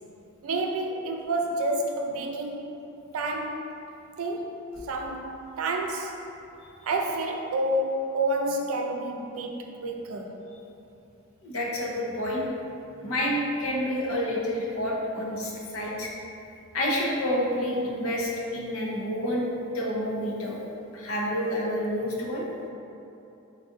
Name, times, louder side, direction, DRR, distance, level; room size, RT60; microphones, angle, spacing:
voice 1, 0.4-2.7 3.1-3.9 4.2-4.6 4.9-6.2 6.8-10.4, right 2 dB, 75° right, 2 dB, 0.4 m, -29 dB
voice 2, 11.4-12.5 13.0-16.1 16.7-19.5 19.7-20.6 20.9-22.5, equal, 75° left, -3 dB, 0.7 m, -28 dB
3.9 x 2.5 x 3.7 m, 2.9 s
head